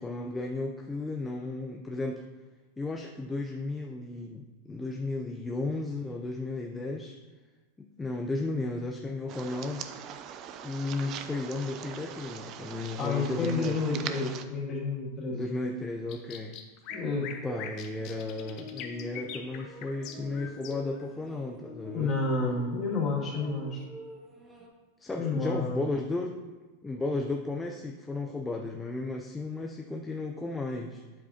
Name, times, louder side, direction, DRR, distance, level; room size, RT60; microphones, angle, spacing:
voice 1, 0.0-2.2 2.8-7.2 7.8-9.9 10.6-13.9 15.3-16.5 17.4-22.1 25.0-26.4 26.8-31.0, left 2 dB, 10° left, 1 dB, 0.5 m, -34 dB
sound 1, 9.3-14.4, right 8 dB, 40° right, 0.5 m, -41 dB
voice 2, 13.0-15.4 16.9-17.3 21.9-23.8 25.2-25.9, left 3 dB, 30° left, -4 dB, 2.3 m, -30 dB
sound 2, 16.1-21.0, left 8 dB, 50° left, 1.0 m, -42 dB
sound 3, 16.9-24.7, left 2 dB, 15° right, 1.5 m, -47 dB
8.8 x 7.7 x 2.8 m, 1.2 s
hypercardioid pair, 125°, 0 cm